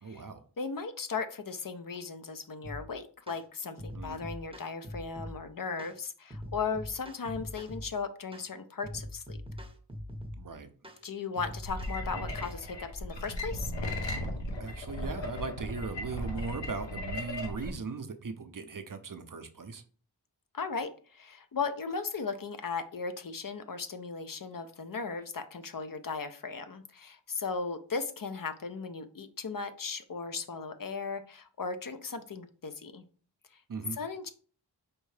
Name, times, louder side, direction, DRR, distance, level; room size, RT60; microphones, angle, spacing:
voice 1, 0.0-0.4 3.9-4.2 10.4-10.7 14.6-19.8 33.7-34.0, right 4 dB, 45° right, 0.6 m, -38 dB
voice 2, 0.6-9.4 11.0-13.7 20.5-33.0 33.5-33.6 33.9-34.3, left 5 dB, 50° left, 0.5 m, -37 dB
sound 1, 2.6-2.9 3.3-3.4 3.8-5.4 5.8-6.0 6.3-7.9 8.3-8.5 8.8-10.4 10.8-11.0 11.4-12.6, left 1 dB, 10° right, 0.7 m, -42 dB
sound 2, 11.6-17.7, left 1 dB, 80° left, 0.9 m, -36 dB
4.6 x 2.6 x 3.2 m
wide cardioid pair, 45°, 44 cm